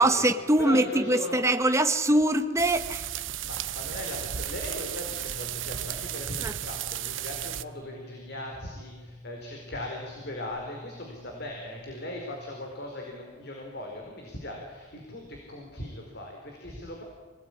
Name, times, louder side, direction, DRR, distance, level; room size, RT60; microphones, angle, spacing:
voice 1, 0.0-3.0 6.4-6.5, right 1 dB, 15° right, 7 dB, 1.5 m, -23 dB
voice 2, 0.6-1.4 3.4-17.0, left 1 dB, 60° left, 1 dB, 4.6 m, -39 dB
sound 1, 2.6-7.6, right 11 dB, 90° right, 0.9 m, -34 dB
sound 2, 5.1-12.6, left 2 dB, 55° right, 2.8 m, -49 dB
26.0 x 19.5 x 10.0 m, 1.4 s
head